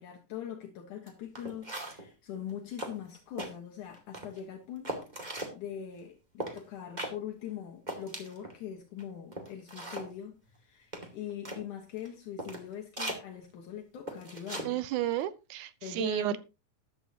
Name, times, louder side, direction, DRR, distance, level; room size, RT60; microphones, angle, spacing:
voice 1, 0.0-14.8 15.8-16.4, left 9 dB, 70° left, 2 dB, 2.7 m, -42 dB
sound 1, 1.1-1.2 1.3-2.1 2.5-2.6 2.8-3.5 3.9-4.4 4.8-5.5 6.4-6.6 7.0-7.1 7.5-7.6 7.9-8.5 9.0-9.1 9.3-10.1 10.9-11.6 12.0-12.1 12.4-12.6 13.0-13.2 14.1-14.7 15.0-15.2, right 1 dB, 15° right, 1.8 m, -39 dB
voice 2, 14.6-16.4, right 12 dB, 75° right, 15 dB, 2.0 m, -32 dB
14.0 x 11.5 x 2.9 m, 0.28 s
omnidirectional pair, 3.8 m